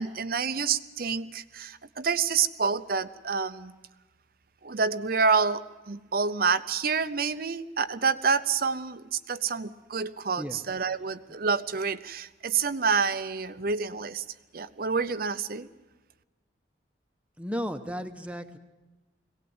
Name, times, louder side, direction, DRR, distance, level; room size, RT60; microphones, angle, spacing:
voice 1, 0.0-3.7 4.6-5.6 5.9-14.2 14.5-15.7, right 5 dB, 55° right, 12 dB, 0.7 m, -28 dB
voice 2, 17.4-18.6, equal, 5° right, 7 dB, 1.1 m, -34 dB
22.5 x 18.0 x 8.0 m, 1.1 s
head